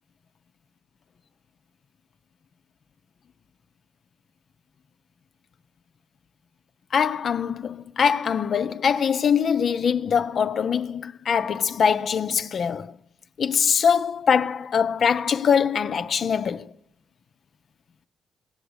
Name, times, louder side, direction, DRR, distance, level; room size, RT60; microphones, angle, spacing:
voice 1, 6.9-12.9 13.4-16.7, left 7 dB, 50° left, 0.5 m, -23 dB
18.0 x 6.7 x 7.9 m
cardioid pair, 90°, 0 cm